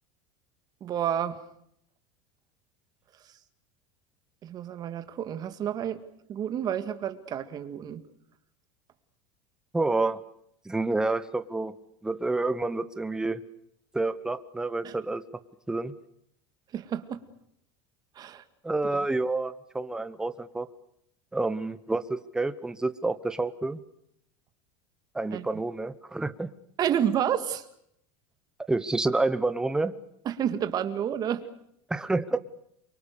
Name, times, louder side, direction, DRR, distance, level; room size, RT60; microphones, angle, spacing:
voice 1, 0.8-1.4 4.4-6.0 6.3-8.0 14.8-14.9 16.7-17.2 18.2-18.4 18.9-19.1 25.3-25.5 26.8-27.7 30.3-31.5, right 9 dB, 30° right, 10 dB, 2.0 m, -30 dB
voice 2, 9.7-10.2 10.6-11.7 12.0-13.4 13.9-15.2 15.7-15.9 18.6-20.7 21.3-23.8 25.1-26.5 28.7-29.9 31.9-32.4, right 2 dB, 5° right, 12 dB, 1.0 m, -28 dB
28.0 x 24.5 x 6.8 m, 0.73 s
supercardioid pair, 155°, 13 cm